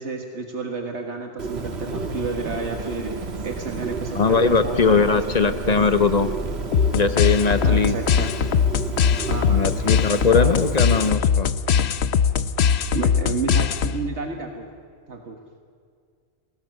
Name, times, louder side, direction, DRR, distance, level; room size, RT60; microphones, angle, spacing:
voice 1, 0.0-5.9 7.6-8.3 9.3-9.7 10.3-10.6 12.9-14.7 15.1-15.4, right 4 dB, 85° right, 3 dB, 1.8 m, -31 dB
Bird, 1.4-11.1, right 3 dB, 70° right, 1.9 m, -32 dB
sound 1, 1.6-6.7, right 4 dB, 35° right, 0.9 m, -36 dB
voice 2, 4.1-6.3 6.9-8.0 9.5-11.5, left 4 dB, 40° left, 10 dB, 1.0 m, -20 dB
sound 2, 6.7-14.2, left 7 dB, 70° left, 1.0 m, -21 dB
29.5 x 18.5 x 6.5 m, 2.2 s
omnidirectional pair, 1.1 m